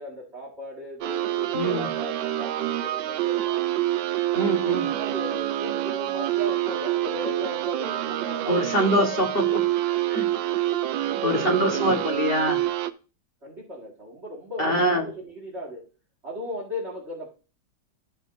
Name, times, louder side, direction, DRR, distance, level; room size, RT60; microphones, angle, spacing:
voice 1, 0.0-3.6 4.4-9.2 11.1-11.8 13.4-15.8 16.2-17.3, equal, 35° right, -1 dB, 2.0 m, -37 dB
sound 1, 1.0-12.9, right 13 dB, 80° right, 1.3 m, -27 dB
voice 2, 1.5-1.9 4.3-4.9 8.5-9.6 10.1-10.3 11.2-12.6 14.6-15.0, right 1 dB, 35° left, 2 dB, 1.3 m, -24 dB
13.5 x 5.0 x 2.6 m, 0.35 s
omnidirectional pair, 2.1 m